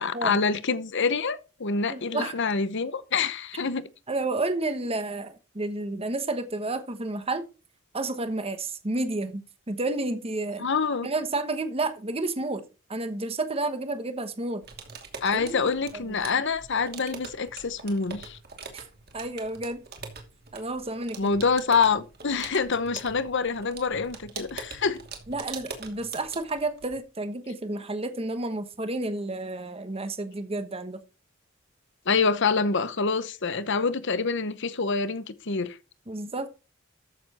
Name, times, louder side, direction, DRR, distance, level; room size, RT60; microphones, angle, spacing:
voice 1, 0.0-3.9 10.6-11.1 15.2-18.4 21.2-25.0 32.1-35.8, left 4 dB, 60° left, 1.0 m, -26 dB
voice 2, 1.9-2.3 4.1-7.4 7.9-9.4 9.7-10.6 11.0-12.6 12.9-14.6 15.3-15.6 15.9-16.3 18.7-18.8 19.1-19.8 20.5-21.3 25.3-31.0 36.1-36.5, right 2 dB, 30° right, 1.2 m, -31 dB
sound 1, 14.6-27.0, right 5 dB, 50° right, 2.7 m, -43 dB
13.5 x 7.0 x 4.3 m
head